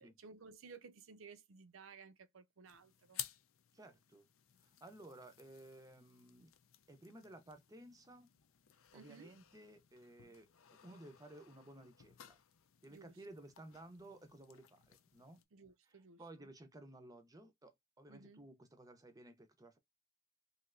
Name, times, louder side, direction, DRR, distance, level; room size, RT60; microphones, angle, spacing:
voice 1, 0.0-3.3 8.9-9.4 12.9-13.1 15.5-16.5 18.1-18.5, right 5 dB, 75° right, 0.6 m, -57 dB
sound 1, 2.6-15.4, left 11 dB, 80° left, 0.5 m, -55 dB
voice 2, 3.7-4.3 4.6-6.5 6.9-8.4 8.9-12.4 12.8-15.4 15.9-19.8, right 1 dB, 15° right, 0.6 m, -56 dB
3.2 x 2.7 x 2.5 m
head